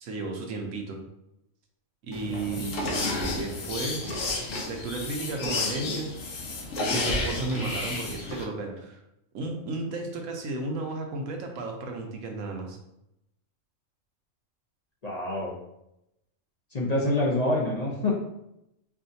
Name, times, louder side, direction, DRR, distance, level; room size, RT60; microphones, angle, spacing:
voice 1, 0.0-1.0 2.0-4.3 4.7-6.1 6.7-9.0 9.3-12.8, right 3 dB, 85° right, 2 dB, 1.1 m, -34 dB
sound 1, 2.1-8.4, left 2 dB, 80° left, 1.1 m, -31 dB
voice 2, 2.3-2.6 15.0-15.5 16.7-18.1, left 1 dB, 40° left, -4 dB, 0.6 m, -27 dB
4.7 x 2.5 x 2.7 m, 0.85 s
omnidirectional pair, 1.3 m